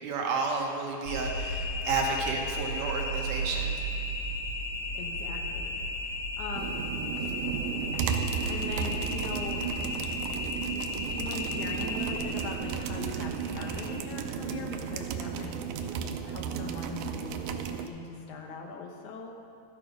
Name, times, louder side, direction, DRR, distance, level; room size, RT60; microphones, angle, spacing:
voice 1, 0.0-3.8, right 4 dB, 70° right, 0 dB, 2.4 m, -31 dB
sound 1, 1.0-13.9, left 1 dB, 20° left, 2.8 m, -34 dB
voice 2, 4.9-5.8 6.1-6.8 8.5-10.0 10.7-19.3, left 4 dB, 65° left, 1 dB, 2.2 m, -41 dB
sound 2, 6.5-17.9, right 8 dB, 85° right, 1.8 m, -34 dB
13.0 x 8.5 x 5.1 m, 2.4 s
omnidirectional pair, 4.2 m